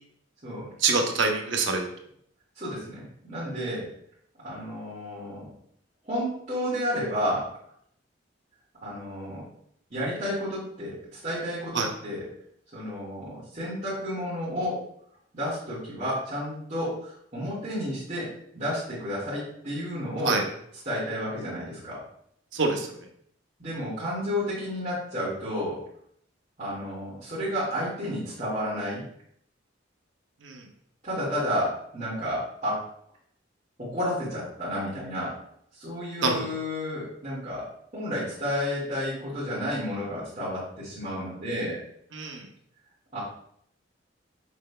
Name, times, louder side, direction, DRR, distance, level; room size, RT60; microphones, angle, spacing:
voice 1, 0.8-1.9 11.7-11.9 20.2-20.4 22.5-22.9 30.4-30.7 36.2-36.6 42.1-42.5, right 3 dB, 75° right, 3 dB, 0.7 m, -25 dB
voice 2, 2.5-3.9 4.4-5.5 6.0-7.5 8.8-9.4 9.9-12.3 12.7-14.8 15.3-18.3 18.5-20.4 20.8-22.0 23.6-25.8 26.6-29.0 31.0-32.8 33.8-35.3 35.7-37.7 37.9-41.8 43.1-43.2, equal, 40° right, -14 dB, 1.6 m, -31 dB
6.0 x 3.2 x 2.2 m, 0.69 s
head